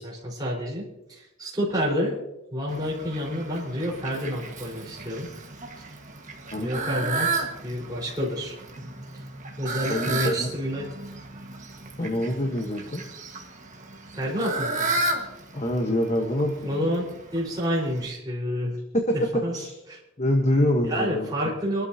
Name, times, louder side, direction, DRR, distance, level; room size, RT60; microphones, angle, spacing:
voice 1, 0.0-2.2 2.5-5.3 5.8-5.9 6.5-8.5 9.6-10.9 14.1-14.9 16.6-17.1 17.3-18.8 19.4-19.6 19.9-20.0 20.8-21.8, equal, 20° right, -4 dB, 4.7 m, -29 dB
Fowl, 2.7-18.1, right 3 dB, 35° right, 1.7 m, -34 dB
voice 2, 6.5-6.9 9.9-10.5 12.0-13.0 15.5-16.9 18.9-19.1 19.5-19.7 20.2-21.3, left 1 dB, 30° left, 3 dB, 1.3 m, -25 dB
25.5 x 12.5 x 2.9 m, 0.93 s
head